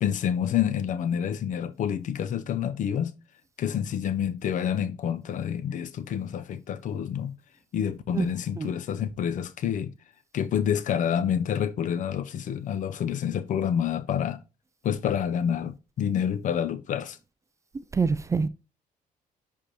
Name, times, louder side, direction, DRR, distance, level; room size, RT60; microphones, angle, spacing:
voice 1, 0.0-3.1 3.6-7.3 7.7-9.9 10.3-14.4 14.8-17.2, left 8 dB, 60° left, 0.6 m, -28 dB
voice 2, 18.0-18.5, right 5 dB, 20° right, 0.3 m, -25 dB
10.0 x 3.4 x 2.8 m
cardioid pair, 115°, 15 cm